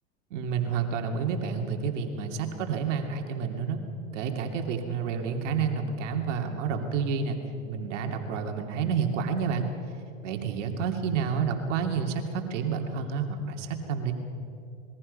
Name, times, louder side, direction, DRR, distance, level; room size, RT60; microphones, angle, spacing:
voice 1, 0.3-3.8 4.1-7.4 7.7-9.7 10.2-14.1, right 6 dB, 70° right, 3 dB, 2.7 m, -29 dB
26.0 x 21.5 x 5.5 m, 2.6 s
supercardioid pair, 120°, 38 cm